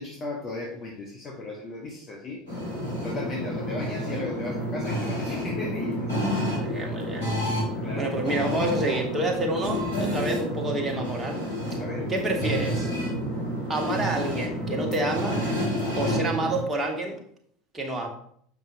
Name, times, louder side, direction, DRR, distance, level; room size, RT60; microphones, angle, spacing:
voice 1, 0.0-2.5 3.0-6.2 7.8-8.2 11.7-12.1 16.5-16.6, left 2 dB, 35° left, -1 dB, 1.3 m, -35 dB
sound 1, 2.5-16.6, equal, 85° left, 2.7 m, -29 dB
voice 2, 6.5-7.3 8.0-11.4 12.1-12.9 13.7-15.4 16.0-17.2 17.7-18.1, right 2 dB, 25° right, 1 dB, 1.7 m, -28 dB
7.1 x 5.6 x 2.9 m, 0.65 s
figure-of-eight pair, 75°, 0 cm